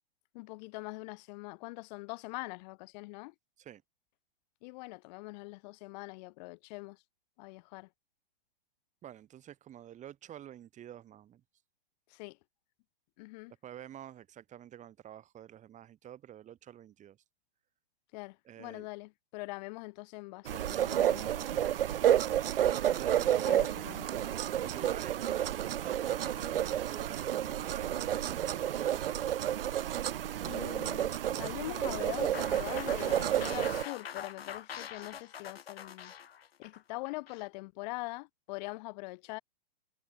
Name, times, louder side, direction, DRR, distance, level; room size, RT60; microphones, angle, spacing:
voice 1, 0.3-3.3 4.6-7.0 7.4-7.9 12.1-12.4 13.2-13.5 18.1-21.7 23.4-24.2 30.0-30.1 30.4-36.1 36.6-39.4, left 25 dB, 45° left, 5.2 m, -43 dB
voice 2, 9.0-11.4 13.6-17.2 18.4-18.9 22.9-23.6 24.6-29.0, right 11 dB, 25° right, 6.8 m, -48 dB
sound 1, 20.4-33.8, right 11 dB, 65° right, 1.2 m, -30 dB
sound 2, 32.3-37.5, left 8 dB, 75° left, 1.7 m, -44 dB
hypercardioid pair, 120°, 30 cm